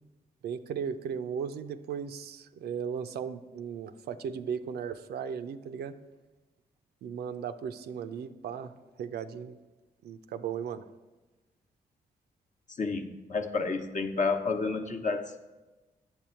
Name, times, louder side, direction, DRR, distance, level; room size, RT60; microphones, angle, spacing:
voice 1, 0.4-6.0 7.0-8.7 9.0-9.6 10.0-10.8, right 7 dB, 75° right, 9 dB, 0.5 m, -36 dB
voice 2, 12.7-15.4, left 4 dB, 50° left, 5 dB, 0.9 m, -30 dB
9.0 x 6.9 x 4.4 m, 1.2 s
supercardioid pair, 50°, 17 cm